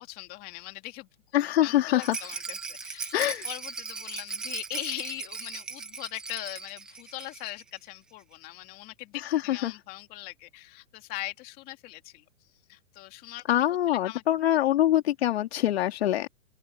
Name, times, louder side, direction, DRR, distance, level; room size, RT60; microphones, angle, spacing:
voice 1, 0.0-3.2 3.4-12.2 12.7-14.6 15.5-15.7 16.2-16.3, left 18 dB, 20° left, 2.5 m, -41 dB
voice 2, 1.3-2.2 3.1-3.5 9.3-9.7 13.5-16.3, left 13 dB, 50° left, 3.2 m, -24 dB
Rattle, 2.0-7.7 8.0-8.1 8.3-8.4, right 4 dB, ahead, 0.5 m, -38 dB
open air
hypercardioid pair, 160°, 40 cm